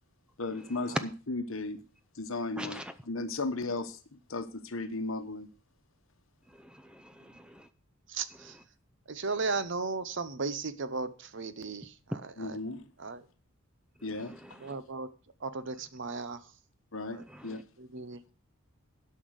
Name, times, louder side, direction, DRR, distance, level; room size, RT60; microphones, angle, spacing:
voice 1, 0.4-1.8 2.2-2.8 3.1-4.0 4.3-5.5 12.4-12.9 14.0-14.4 16.9-17.2 17.4-17.6, left 3 dB, 65° left, 1.1 m, -35 dB
voice 2, 2.6-2.9 6.6-7.7 14.2-14.7 17.3-17.6, equal, 5° right, 0.5 m, -46 dB
voice 3, 8.1-8.6 9.1-12.6 13.0-13.2 14.6-15.1 15.4-16.5 17.1-17.2 17.8-18.3, right 4 dB, 55° right, 0.8 m, -36 dB
12.5 x 5.7 x 6.5 m
head